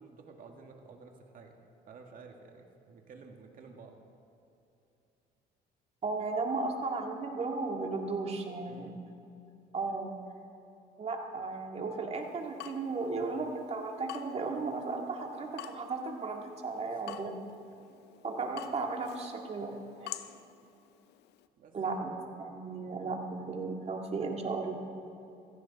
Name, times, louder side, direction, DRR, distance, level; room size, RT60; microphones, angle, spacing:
voice 1, 0.0-1.6 1.9-4.0 8.7-9.0 16.9-17.2 21.6-22.0, right 4 dB, 55° right, 2 dB, 2.1 m, -52 dB
voice 2, 6.0-9.0 9.7-10.1 11.0-17.3 18.2-19.7 20.0-20.1 21.7-24.7, right 3 dB, 40° right, 2 dB, 2.0 m, -35 dB
Water tap faucet / Drip, 12.2-21.5, left 12 dB, 80° left, 0.7 m, -50 dB
17.0 x 14.5 x 4.2 m, 2.8 s
cardioid pair, 110°, 17 cm